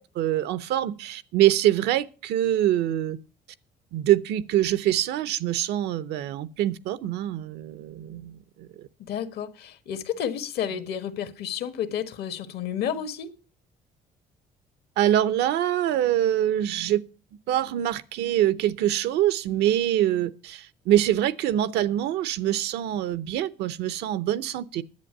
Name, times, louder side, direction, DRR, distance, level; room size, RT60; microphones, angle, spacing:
voice 1, 0.2-3.2 3.9-8.9 15.0-17.0 17.5-24.8, right 12 dB, 80° right, 0.7 m, -24 dB
voice 2, 9.1-13.3, left 9 dB, 70° left, 1.4 m, -31 dB
10.5 x 8.1 x 6.5 m
cardioid pair, 110°, 17 cm